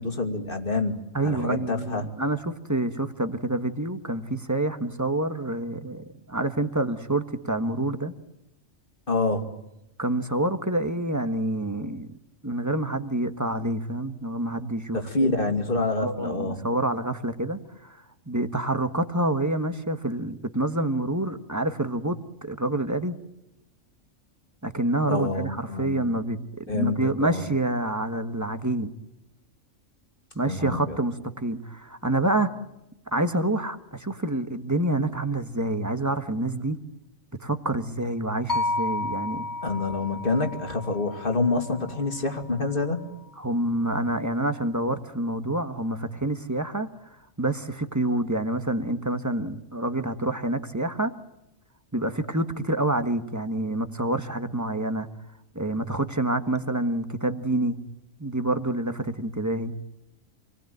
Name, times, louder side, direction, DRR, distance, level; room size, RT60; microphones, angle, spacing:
voice 1, 0.0-2.1 9.1-9.5 14.9-16.6 25.1-26.1 26.7-27.0 27.2-27.4 30.4-31.0 39.6-43.1, left 3 dB, 45° left, 5 dB, 2.8 m, -27 dB
voice 2, 1.1-8.1 10.0-12.1 12.4-15.3 16.0-23.2 24.6-28.9 30.3-32.5 33.1-36.8 37.4-39.5 43.4-46.9 47.4-51.1 51.9-55.1 55.5-57.8 58.2-59.7, right 1 dB, 15° right, 9 dB, 1.4 m, -27 dB
sound 1, 38.5-42.7, left 2 dB, 15° left, 2.4 m, -32 dB
28.0 x 20.0 x 9.4 m, 0.88 s
omnidirectional pair, 1.3 m